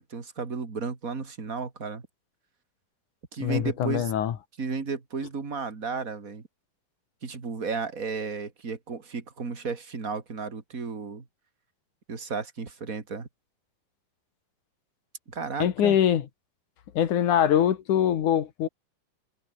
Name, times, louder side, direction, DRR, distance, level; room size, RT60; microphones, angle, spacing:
voice 1, 0.0-2.0 3.3-4.1 4.6-6.4 7.2-11.2 12.1-13.3 15.3-16.0, right 5 dB, 25° right, 2.8 m, -33 dB
voice 2, 3.4-4.3 15.6-16.3 16.9-18.7, left 10 dB, 70° left, 3.1 m, -23 dB
omnidirectional pair, 3.7 m